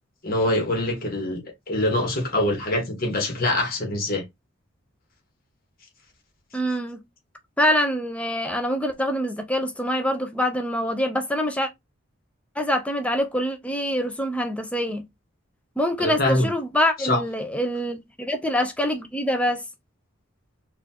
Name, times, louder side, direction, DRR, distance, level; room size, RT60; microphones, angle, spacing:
voice 1, 0.2-4.2 16.0-16.5 17.0-17.2, left 1 dB, 45° left, 1.3 m, -24 dB
voice 2, 6.5-7.0 7.6-11.7 12.6-15.0 15.8-19.6, equal, 5° left, 0.5 m, -25 dB
4.1 x 2.5 x 2.8 m
head